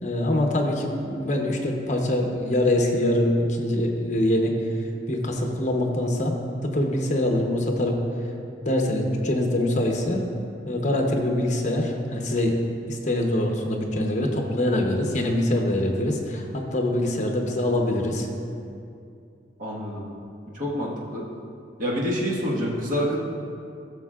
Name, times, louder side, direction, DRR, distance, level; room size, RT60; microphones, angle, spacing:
voice 1, 0.0-4.6 5.1-6.3 6.6-8.0 8.6-10.2 10.7-12.6 12.9-18.3, left 1 dB, 40° left, 2 dB, 0.9 m, -24 dB
voice 2, 19.6-20.0 20.5-21.2 21.8-23.2, equal, 50° right, -5 dB, 1.6 m, -27 dB
14.0 x 6.7 x 2.4 m, 2.5 s
head